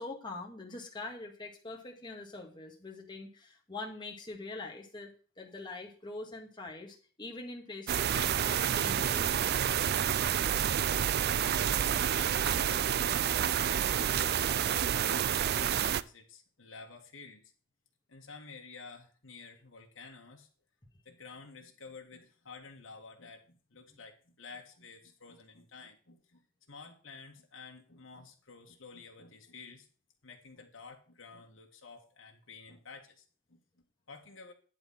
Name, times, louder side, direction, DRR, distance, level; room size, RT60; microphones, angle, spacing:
voice 1, 0.0-9.7 23.9-24.0, left 2 dB, 25° left, 0 dB, 1.9 m, -44 dB
sound 1, 7.9-16.0, right 9 dB, 55° right, 0.4 m, -29 dB
voice 2, 11.4-14.1 14.7-17.5 18.1-20.5 21.1-26.4 26.7-29.9 30.2-34.5, left 4 dB, 70° left, 1 dB, 1.8 m, -51 dB
10.5 x 4.1 x 7.2 m, 0.40 s
head